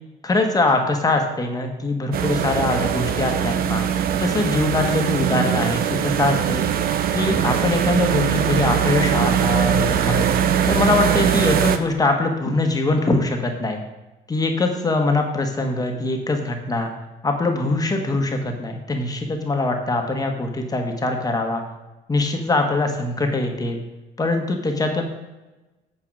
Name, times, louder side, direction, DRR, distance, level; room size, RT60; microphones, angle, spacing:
voice 1, 0.2-3.9 4.2-6.6 7.1-10.3 10.6-13.8 14.3-16.9 17.2-21.6 22.1-23.8 24.2-25.0, left 2 dB, 20° left, 3 dB, 1.3 m, -22 dB
sound 1, 2.1-11.8, right 9 dB, 60° right, 0.7 m, -21 dB
8.6 x 4.7 x 6.2 m, 1.1 s
cardioid pair, 110°, 17 cm